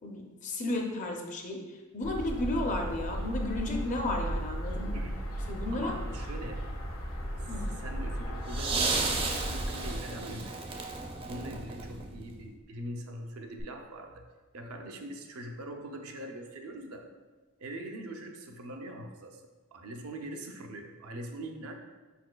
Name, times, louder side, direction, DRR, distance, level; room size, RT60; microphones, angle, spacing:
voice 1, 0.0-5.0 5.5-5.9 7.5-7.7, left 2 dB, 35° left, 2 dB, 0.5 m, -33 dB
sound 1, 2.0-10.0, equal, 65° left, 0.8 m, -35 dB
voice 2, 4.9-5.3 5.7-6.7 7.4-7.5 7.8-10.8 11.3-14.2 14.5-17.1 17.6-21.7, right 1 dB, 85° right, 3 dB, 0.5 m, -42 dB
sound 2, 8.3-12.4 13.6-13.7, right 3 dB, 25° right, 0.4 m, -34 dB
5.0 x 4.2 x 2.2 m, 1.3 s
head